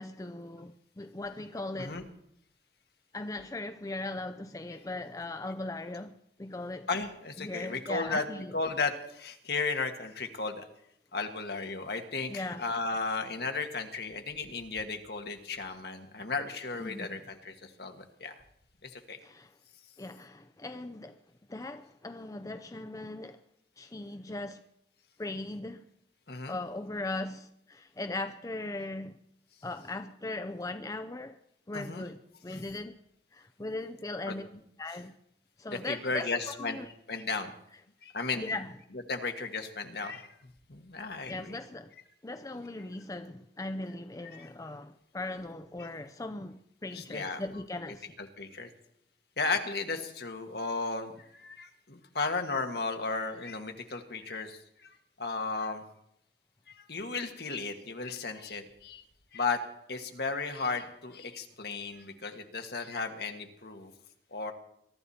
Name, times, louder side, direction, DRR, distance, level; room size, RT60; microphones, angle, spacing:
voice 1, 0.0-2.0 3.1-6.9 7.4-8.5 12.3-12.6 16.8-17.2 19.2-19.5 20.0-21.2 21.5-23.4 23.8-24.6 25.2-25.8 26.5-29.2 29.6-31.4 31.7-32.9 33.3-34.5 34.8-35.1 35.6-36.3 36.6-36.9 38.3-38.7 41.3-41.9 42.2-48.1, left 2 dB, 20° left, 0.5 m, -39 dB
voice 2, 6.9-10.6 11.1-18.3 18.8-19.2 26.3-26.6 31.7-32.1 32.5-32.6 34.3-34.4 34.9-35.0 35.7-36.8 37.1-37.5 38.0-38.5 38.9-40.3 40.7-41.6 44.3-44.5 45.8-45.9 46.9-48.7 49.4-55.8 56.7-59.0 59.3-59.6 59.9-63.9 64.3-64.5, left 4 dB, 60° left, 1.6 m, -35 dB
22.5 x 12.5 x 4.3 m
head